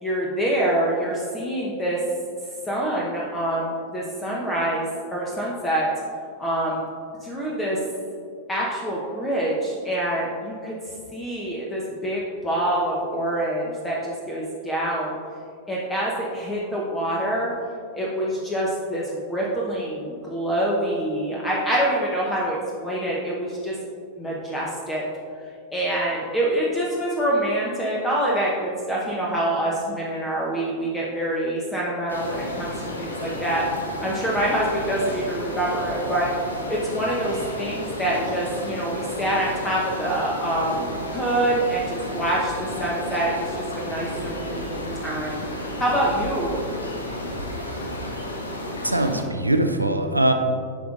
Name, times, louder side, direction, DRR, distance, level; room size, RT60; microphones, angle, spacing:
voice 1, 0.0-2.0 2.7-5.9 6.4-6.8 7.2-7.8 8.5-15.1 15.7-17.5 17.9-23.8 24.2-25.0 25.4-32.7 33.0-36.3 36.7-46.6, right 1 dB, 15° left, -4 dB, 1.0 m, -26 dB
sound 1, 32.1-49.2, left 1 dB, 75° left, 0.9 m, -32 dB
voice 2, 48.8-50.3, right 1 dB, 85° right, 6 dB, 0.5 m, -21 dB
10.5 x 5.8 x 2.5 m, 2.3 s
figure-of-eight pair, 90°, 0 cm